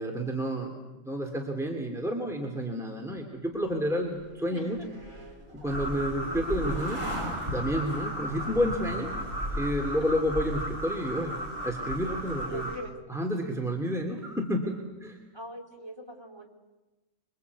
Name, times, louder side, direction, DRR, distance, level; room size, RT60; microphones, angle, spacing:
voice 1, 0.0-4.8 5.6-7.0 7.5-9.1 9.6-11.4 11.6-12.7 13.1-14.7 15.0-15.2, equal, ahead, 2 dB, 2.7 m, -30 dB
sound 1, 3.6-11.0, equal, 75° right, 6.9 m, -41 dB
voice 2, 4.5-4.9 10.0-10.3 12.5-12.9 15.3-16.5, equal, 20° right, 1 dB, 3.8 m, -42 dB
sound 2, 5.7-12.8, equal, 40° right, 6.9 m, -35 dB
28.0 x 23.5 x 8.3 m, 1.1 s
omnidirectional pair, 1.4 m